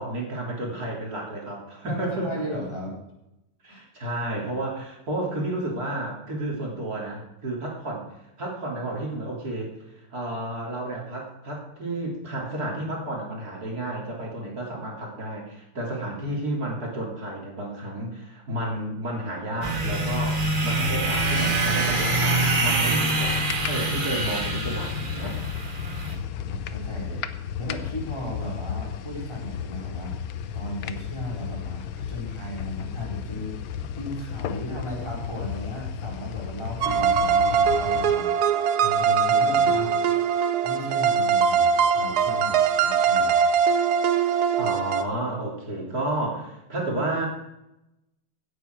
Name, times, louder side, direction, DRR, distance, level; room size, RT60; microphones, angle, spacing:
voice 1, 0.0-2.4 3.6-8.0 8.4-9.7 10.0-25.4 44.6-47.3, right 1 dB, 40° right, -2 dB, 3.6 m, -31 dB
voice 2, 1.9-3.0 3.6-3.8 20.5-21.0 25.9-27.2 27.6-40.0 40.6-43.4, left 1 dB, 10° left, -4 dB, 4.5 m, -36 dB
sound 1, 19.6-26.1, right 2 dB, 25° right, 1.7 m, -25 dB
sound 2, 23.3-38.2, left 8 dB, 75° left, 1.6 m, -34 dB
sound 3, 36.8-45.0, right 6 dB, 65° right, 1.0 m, -22 dB
16.5 x 9.3 x 4.7 m, 0.89 s
omnidirectional pair, 2.4 m